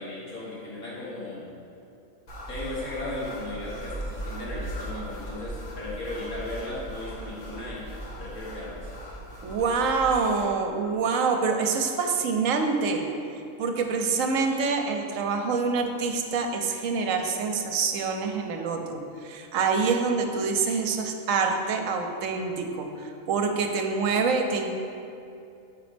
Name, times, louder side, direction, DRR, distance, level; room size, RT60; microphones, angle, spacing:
voice 1, 0.0-1.5 2.5-7.9 8.2-8.9, left 1 dB, 90° left, -7 dB, 2.1 m, -36 dB
sound 1, 2.3-10.5, right 1 dB, 45° left, 1.0 m, -38 dB
voice 2, 9.4-13.1 13.6-24.7, right 4 dB, 75° right, 4 dB, 1.0 m, -26 dB
5.2 x 5.0 x 5.0 m, 2.6 s
omnidirectional pair, 1.4 m